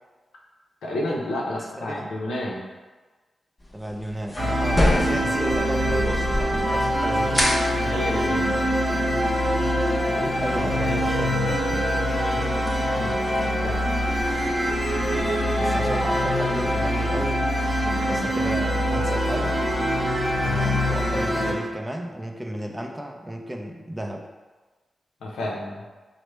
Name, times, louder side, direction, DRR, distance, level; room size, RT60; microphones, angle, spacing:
voice 1, 0.8-2.7 7.8-8.6 12.4-12.7 13.0-13.2 13.6-13.8 25.2-25.8, left 1 dB, 90° left, -3 dB, 0.5 m, -30 dB
voice 2, 1.6-2.1 3.7-7.5 10.1-12.5 15.5-17.5 17.8-19.6 20.4-24.3, right 1 dB, 15° right, 3 dB, 0.4 m, -33 dB
sound 1, 3.6-15.2, left 1 dB, 25° left, 0.7 m, -31 dB
sound 2, 4.4-21.5, equal, 35° right, 0.8 m, -24 dB
3.1 x 2.0 x 3.2 m, 1.3 s
supercardioid pair, 45°, 0 cm